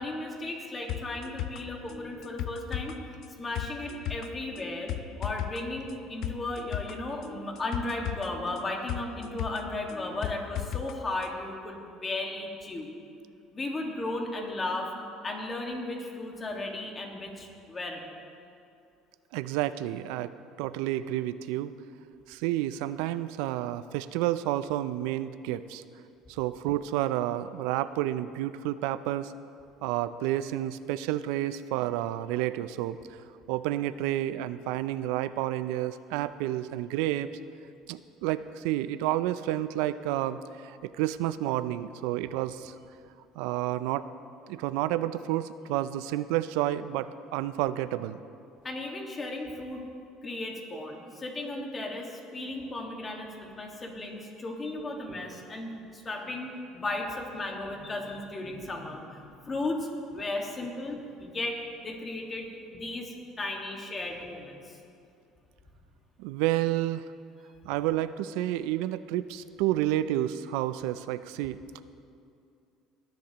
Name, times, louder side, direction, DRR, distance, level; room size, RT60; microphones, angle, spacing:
voice 1, 0.0-2.9 3.4-4.9 5.2-12.9 13.5-14.9 15.2-18.1 48.6-49.8 50.2-64.8, left 2 dB, 25° left, 1 dB, 1.7 m, -35 dB
sound 1, 0.9-10.9 11.2-11.3, left 11 dB, 60° left, 0.5 m, -37 dB
voice 2, 19.3-20.3 20.6-21.7 22.3-25.8 26.3-29.3 29.8-33.0 33.5-37.3 37.9-42.7 43.4-44.0 44.5-48.2 66.2-67.1 67.7-71.8, right 14 dB, 85° right, 14 dB, 0.4 m, -30 dB
19.0 x 10.5 x 2.9 m, 2.5 s
cardioid pair, 120°, 0 cm